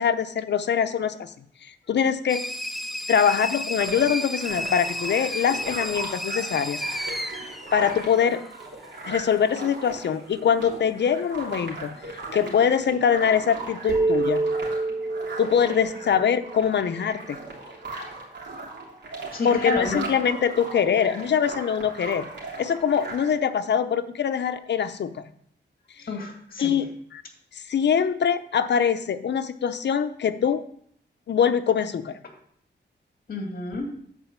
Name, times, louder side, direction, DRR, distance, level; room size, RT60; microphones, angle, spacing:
voice 1, 0.0-1.3 1.6-2.4 3.1-6.8 7.7-8.4 9.0-11.9 12.3-14.5 15.4-17.4 19.4-22.3 22.6-25.2 26.6-27.2 27.5-30.6 31.3-32.2, left 7 dB, 70° left, 10 dB, 0.7 m, -23 dB
sound 1, 2.3-8.7, equal, ahead, 0.5 m, -32 dB
sound 2, 3.8-23.4, right 3 dB, 70° right, 2.8 m, -38 dB
sound 3, 13.9-17.4, right 2 dB, 20° right, 2.1 m, -27 dB
voice 2, 19.3-20.0 26.1-26.8 33.3-33.9, left 2 dB, 50° left, 2 dB, 2.1 m, -29 dB
9.2 x 4.5 x 7.3 m, 0.64 s
wide cardioid pair, 165°, 19 cm